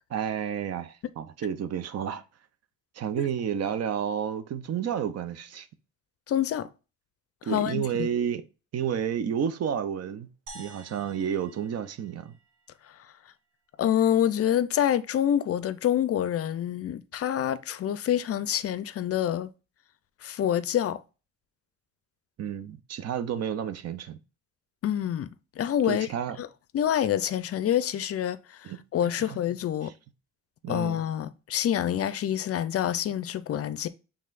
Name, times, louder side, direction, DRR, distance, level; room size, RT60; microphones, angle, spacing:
voice 1, 0.1-2.2 2.9-5.7 7.4-8.4 8.7-10.3 10.5-12.3 22.4-24.2 25.8-26.4 28.6-28.8 29.2-29.4 29.8-29.9 30.6-31.0, right 8 dB, 55° right, 0.6 m, -31 dB
voice 2, 6.3-6.7 7.4-8.1 12.9-13.0 13.8-19.5 20.2-21.0 24.8-25.3 25.6-26.1 26.4-26.5 26.7-29.9 30.7-33.9, left 10 dB, 50° left, 0.5 m, -27 dB
sound 1, 10.5-12.9, right 2 dB, 85° right, 1.0 m, -49 dB
5.5 x 3.5 x 2.5 m
cardioid pair, 90°, 30 cm